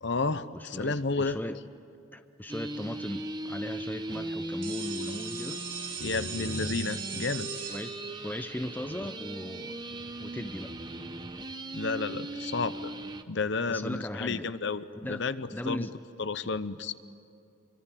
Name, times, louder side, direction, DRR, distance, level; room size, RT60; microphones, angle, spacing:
voice 1, 0.0-1.4 6.0-7.5 11.7-12.9 13.3-15.9 16.2-16.9, left 4 dB, 55° left, 14 dB, 0.8 m, -31 dB
voice 2, 0.5-1.6 2.1-5.7 7.7-9.8 10.2-10.7 13.7-14.5 15.0-16.0, left 1 dB, 10° left, 9 dB, 0.6 m, -38 dB
sound 1, 2.5-13.2, right 1 dB, 20° right, 0.8 m, -38 dB
sound 2, 4.6-10.3, right 6 dB, 40° right, 3.1 m, -41 dB
26.0 x 24.5 x 9.2 m, 2.5 s
head